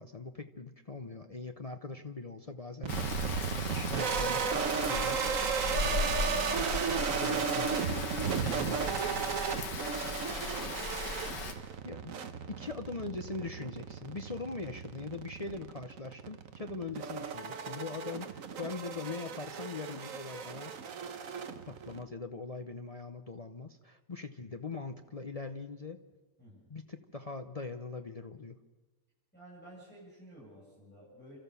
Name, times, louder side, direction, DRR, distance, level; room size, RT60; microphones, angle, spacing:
voice 1, 0.0-3.1 3.7-5.2 5.8-6.5 7.0-9.3 11.8-12.2 12.5-20.7 21.6-26.0 26.7-28.6, left 3 dB, 55° left, 6 dB, 0.4 m, -42 dB
sound 1, 2.8-22.0, right 6 dB, 55° right, 1.3 m, -35 dB
Rain, 2.9-11.5, left 3 dB, 80° left, 2.3 m, -37 dB
voice 2, 29.3-31.4, right 1 dB, 5° left, -8 dB, 8.0 m, -54 dB
30.0 x 13.5 x 6.9 m, 1.2 s
omnidirectional pair, 1.9 m